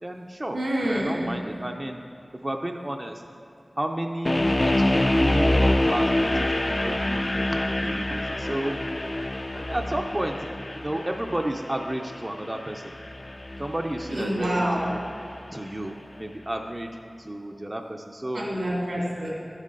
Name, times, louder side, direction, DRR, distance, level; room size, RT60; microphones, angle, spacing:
voice 1, 0.0-0.6 0.9-2.0 2.4-3.2 3.8-8.8 9.6-10.4 10.7-12.9 13.6-15.0 15.5-18.5, right 1 dB, 25° right, 3 dB, 0.5 m, -32 dB
voice 2, 0.5-1.3 14.1-14.9 18.3-19.3, equal, 90° right, -4 dB, 2.3 m, -27 dB
sound 1, 4.3-15.3, left 1 dB, 40° left, 0.4 m, -26 dB
11.0 x 7.4 x 3.8 m, 2.6 s
wide cardioid pair, 65°, 0 cm